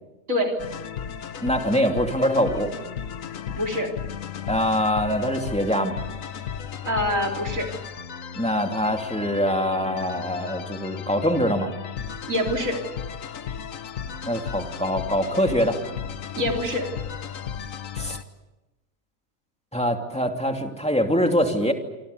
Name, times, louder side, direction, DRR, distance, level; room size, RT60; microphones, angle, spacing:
sound 1, 0.6-18.2, left 8 dB, 60° left, 1.4 m, -35 dB
voice 1, 1.4-2.7 4.5-6.0 8.3-11.7 14.3-15.8 17.9-18.2 19.7-21.7, equal, 5° left, 3 dB, 2.7 m, -23 dB
voice 2, 3.6-3.9 6.9-7.7 12.3-12.8 16.4-16.9, left 1 dB, 60° right, 2 dB, 4.2 m, -25 dB
27.5 x 25.5 x 7.0 m, 1.0 s
omnidirectional pair, 1.6 m